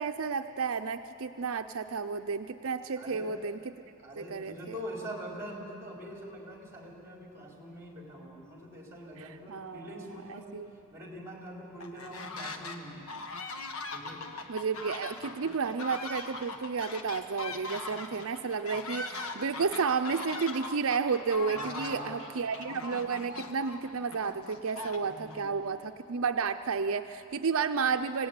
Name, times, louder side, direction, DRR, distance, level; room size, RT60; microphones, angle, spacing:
voice 1, 0.0-3.6 4.2-4.5 9.2-10.7 14.5-28.3, right 5 dB, 65° right, 7 dB, 0.6 m, -32 dB
voice 2, 3.0-3.3 4.0-10.5 10.9-13.0 13.9-14.2 21.5-22.3 25.0-25.6, equal, 15° right, -1 dB, 4.5 m, -43 dB
sound 1, 11.8-12.8 13.1-25.4, left 3 dB, 75° left, 1.5 m, -40 dB
25.0 x 18.0 x 9.6 m, 2.9 s
head